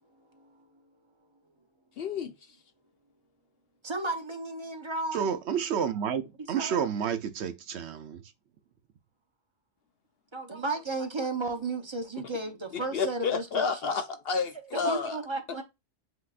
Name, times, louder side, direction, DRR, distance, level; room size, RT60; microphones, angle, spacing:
voice 1, 0.3-0.6 3.8-5.3 6.5-6.9 10.3-13.7 14.7-15.6, right 3 dB, 25° right, 0.7 m, -34 dB
voice 2, 2.0-2.3 12.9-15.2, left 5 dB, 60° left, 0.7 m, -30 dB
voice 3, 5.1-8.2, right 8 dB, 65° right, 0.8 m, -30 dB
7.9 x 2.8 x 2.4 m
omnidirectional pair, 1.3 m